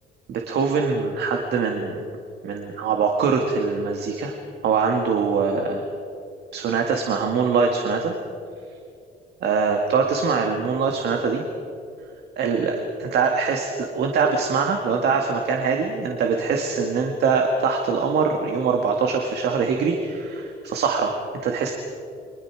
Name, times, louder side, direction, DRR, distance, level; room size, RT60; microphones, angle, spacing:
voice 1, 0.3-2.0 2.4-4.4 4.6-5.8 6.5-8.1 9.4-11.4 12.4-21.7, right 5 dB, 65° right, 2 dB, 2.0 m, -23 dB
29.5 x 24.5 x 4.8 m, 2.5 s
cardioid pair, 180°, 18 cm